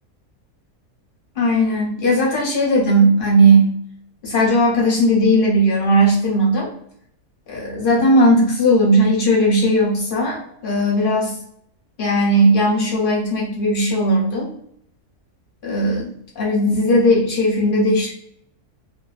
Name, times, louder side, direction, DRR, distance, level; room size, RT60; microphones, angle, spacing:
voice 1, 1.4-3.7 4.2-6.7 7.5-11.3 12.0-14.5 15.6-16.1 16.4-18.1, right 1 dB, 55° left, -3 dB, 0.6 m, -17 dB
2.6 x 2.2 x 2.3 m, 0.69 s
omnidirectional pair, 1.6 m